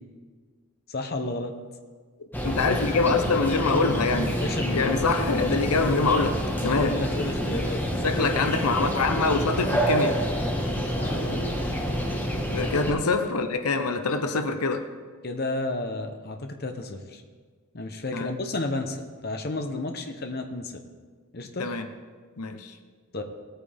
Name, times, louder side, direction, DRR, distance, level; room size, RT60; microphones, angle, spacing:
voice 1, 0.9-1.5 4.3-5.0 5.8-6.0 6.6-7.8 10.9-11.6 15.2-17.2 17.7-20.8 21.3-21.7 23.1-23.2, left 2 dB, 45° left, 5 dB, 0.8 m, -32 dB
sound 1, 2.3-12.9, equal, 10° left, 1.3 m, -28 dB
voice 2, 2.4-4.3 4.7-7.0 8.0-10.2 12.5-14.9 18.1-18.3 21.6-21.9 22.4-22.7, left 3 dB, 85° left, 8 dB, 0.8 m, -25 dB
18.0 x 8.9 x 3.5 m, 1.5 s
head